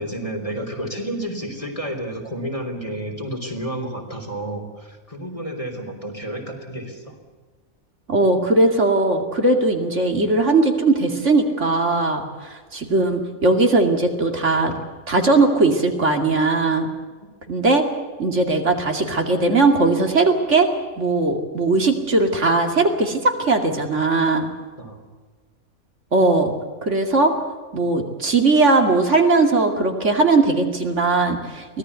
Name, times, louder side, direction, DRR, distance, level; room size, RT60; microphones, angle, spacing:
voice 1, 0.0-7.2 14.7-14.8 17.2-17.3 24.8-25.0, right 1 dB, 25° left, 2 dB, 3.5 m, -31 dB
voice 2, 8.1-14.8 15.1-16.9 17.5-17.8 18.2-20.7 21.0-24.5 26.1-26.5 26.8-27.3 27.7-31.8, right 3 dB, 55° right, 4 dB, 2.7 m, -19 dB
24.5 x 17.5 x 8.3 m, 1.5 s
omnidirectional pair, 1.5 m